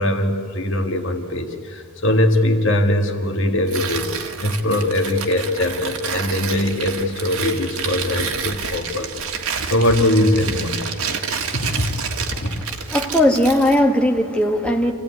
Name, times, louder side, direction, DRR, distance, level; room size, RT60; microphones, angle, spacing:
voice 1, 0.0-9.1 9.7-10.8 11.5-12.0 12.3-12.5, left 1 dB, 60° left, 4 dB, 1.8 m, -21 dB
Tearing, 3.7-13.9, right 6 dB, 80° right, 1.7 m, -29 dB
voice 2, 12.9-14.9, left 1 dB, 5° left, 1 dB, 1.6 m, -18 dB
27.5 x 15.5 x 9.6 m, 2.3 s
head